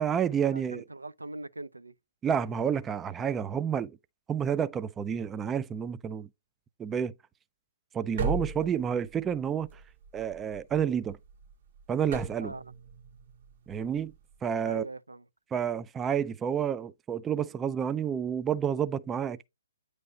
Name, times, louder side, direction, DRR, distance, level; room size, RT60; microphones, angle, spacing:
voice 1, 0.0-0.8 2.2-4.0 4.3-6.3 6.8-7.1 7.9-9.8 10.1-11.2 11.9-12.5 13.7-14.1 14.4-14.9 15.5-19.5, right 8 dB, 15° right, 0.3 m, -29 dB
voice 2, 0.5-1.9 12.4-12.7 14.6-15.2, right 2 dB, 85° right, 0.5 m, -41 dB
sound 1, 8.2-14.4, right 4 dB, 50° right, 1.4 m, -38 dB
9.3 x 3.2 x 3.8 m
figure-of-eight pair, 130°, 0 cm